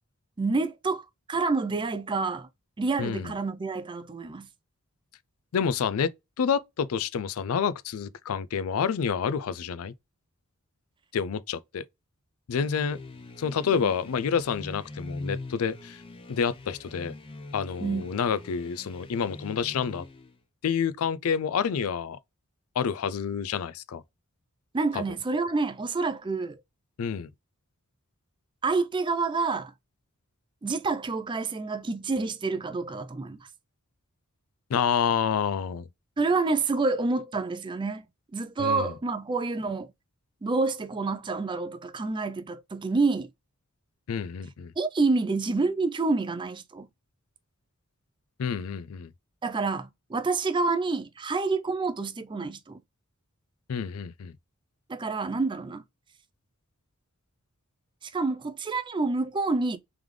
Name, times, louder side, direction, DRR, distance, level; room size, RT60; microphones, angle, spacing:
voice 1, 0.4-2.5 2.8-4.5 13.7-13.9 17.8-18.0 24.7-26.6 28.6-29.7 30.6-33.4 36.2-38.1 38.3-39.9 40.4-43.3 44.8-46.9 49.4-52.8 54.9-55.8 58.0-59.8, right 3 dB, 20° right, 0.4 m, -28 dB
voice 2, 3.0-3.3 5.5-6.1 6.4-9.9 11.1-11.8 12.5-13.0 13.4-16.0 16.3-17.1 17.5-20.0 20.6-22.2 22.8-24.0 24.9-25.0 27.0-27.3 34.7-35.9 38.6-38.9 44.1-44.7 48.4-49.1 53.7-54.3, left 7 dB, 75° left, 0.4 m, -28 dB
sound 1, 12.6-20.4, left 2 dB, 25° left, 0.6 m, -42 dB
3.6 x 3.4 x 3.1 m
head